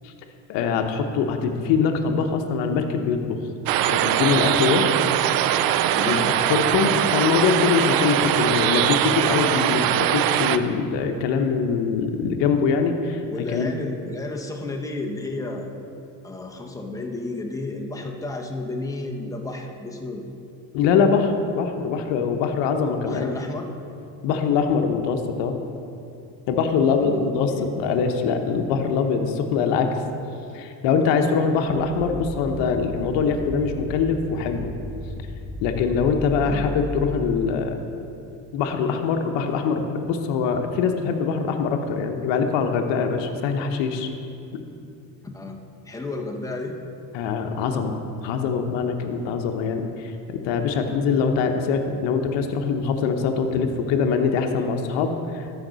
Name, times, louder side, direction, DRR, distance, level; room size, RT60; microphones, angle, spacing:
voice 1, 0.5-3.4 3.9-4.8 6.0-6.2 6.5-13.2 13.5-13.7 20.7-23.3 24.2-25.6 26.5-29.9 30.5-34.7 35.6-37.8 38.5-44.1 44.5-44.6 47.1-55.5, left 5 dB, 75° left, 5 dB, 0.9 m, -23 dB
sound 1, 3.7-10.6, right 11 dB, 55° right, 0.5 m, -21 dB
voice 2, 5.9-6.4 13.2-15.7 16.2-20.2 23.0-23.7 26.8-27.7 36.4-36.7 45.2-45.6 45.8-46.8, left 2 dB, 10° left, 0 dB, 1.0 m, -32 dB
sound 2, 31.6-37.4, left 1 dB, 20° right, 2.0 m, -35 dB
13.0 x 5.2 x 4.0 m, 2.6 s
supercardioid pair, 95°, 44 cm